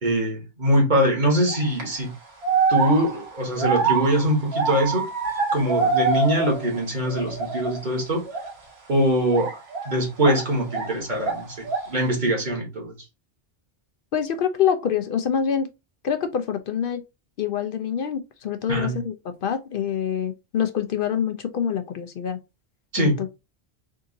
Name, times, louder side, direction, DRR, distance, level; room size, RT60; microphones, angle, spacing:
voice 1, 0.0-2.1 2.7-5.1 5.5-8.2 8.9-9.5 9.8-12.9 18.7-19.0 22.9-23.2, equal, 50° right, 1.5 m, -23 dB
sound 1, 1.5-1.8 2.4-6.8 7.1-7.8 8.3-8.5 9.3-10.9 11.2-12.0, right 5 dB, 80° right, 1.5 m, -25 dB
voice 2, 14.1-15.7 16.0-17.0 17.4-19.1 19.4-22.4 23.0-23.4, left 8 dB, 65° left, 0.7 m, -25 dB
3.7 x 2.6 x 3.8 m
omnidirectional pair, 1.1 m